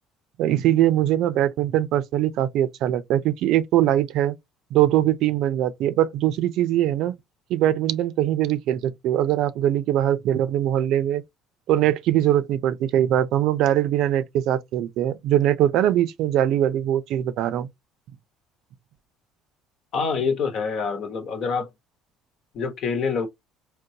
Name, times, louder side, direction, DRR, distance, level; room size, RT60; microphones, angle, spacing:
voice 1, 0.4-4.4 4.7-7.1 7.5-11.2 11.7-17.7, right 12 dB, 65° right, 0.4 m, -22 dB
voice 2, 19.9-21.7 22.5-23.3, left 5 dB, 55° left, 1.1 m, -26 dB
3.7 x 2.3 x 2.7 m
cardioid pair, 105°, 0 cm